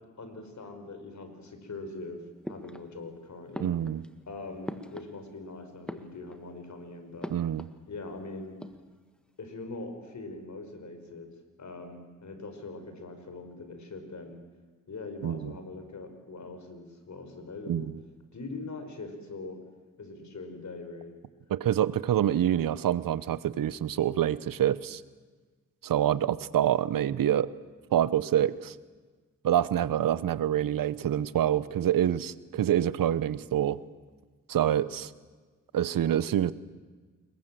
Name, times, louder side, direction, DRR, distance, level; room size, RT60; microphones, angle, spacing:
voice 1, 0.2-2.2 2.5-3.7 4.3-7.3 7.9-8.6 9.4-11.3 11.6-14.4 14.9-17.9 18.3-19.6 20.0-21.2, left 3 dB, 60° left, 7 dB, 5.5 m, -42 dB
sound 1, 2.4-3.2 3.5-5.5 5.8-6.6 7.2-7.8 8.1-8.2 8.4-9.2, equal, 5° left, 1.8 m, -43 dB
voice 2, 3.6-4.0 7.3-7.7 15.2-15.5 17.7-17.9 21.5-25.0 25.8-27.5 27.9-28.7 29.4-33.8 34.5-35.1 35.7-36.5, right 11 dB, 85° right, 17 dB, 1.0 m, -26 dB
28.0 x 22.5 x 7.7 m, 1.4 s
cardioid pair, 70°, 33 cm